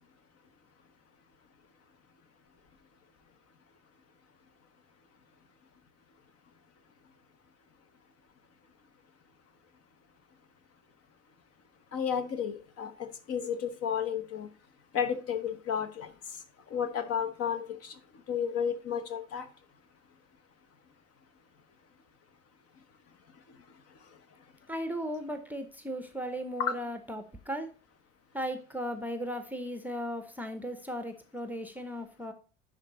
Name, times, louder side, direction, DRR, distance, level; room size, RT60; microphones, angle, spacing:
voice 1, 11.9-14.5 14.9-16.1 16.7-18.0 18.3-19.5 26.6-26.8, left 7 dB, 40° left, 10 dB, 1.2 m, -32 dB
voice 2, 24.7-27.7 28.3-32.3, equal, 5° right, 7 dB, 0.9 m, -36 dB
10.5 x 3.9 x 3.9 m, 0.36 s
hypercardioid pair, 75°, 38 cm